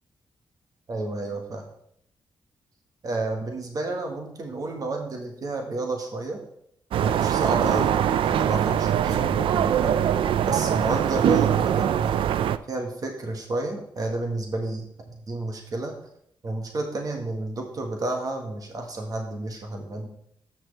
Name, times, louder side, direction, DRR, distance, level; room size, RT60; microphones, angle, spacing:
voice 1, 0.9-1.7 3.0-6.4 7.0-8.0 8.2-10.0 10.5-12.2 12.7-15.9 16.4-20.1, right 2 dB, 45° right, 2 dB, 1.5 m, -31 dB
sound 1, 6.9-12.6, right 10 dB, 80° right, 0.4 m, -22 dB
13.5 x 6.1 x 3.4 m, 0.71 s
wide cardioid pair, 145°, 9 cm